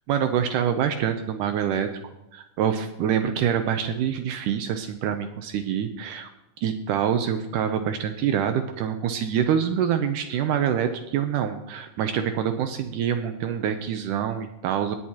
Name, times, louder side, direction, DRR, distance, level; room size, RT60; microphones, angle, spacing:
voice 1, 0.1-1.9 2.3-6.3 6.6-15.0, right 8 dB, 80° right, 8 dB, 1.8 m, -25 dB
19.5 x 9.2 x 2.9 m, 0.95 s
omnidirectional pair, 4.4 m